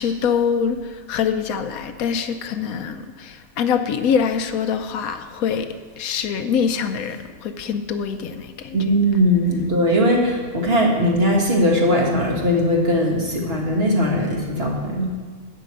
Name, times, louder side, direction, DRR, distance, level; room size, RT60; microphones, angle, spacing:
voice 1, 0.0-8.8, left 7 dB, 75° left, 8 dB, 1.1 m, -24 dB
voice 2, 8.7-15.1, equal, 45° right, -1 dB, 1.8 m, -19 dB
12.0 x 4.9 x 8.5 m, 1.5 s
omnidirectional pair, 1.5 m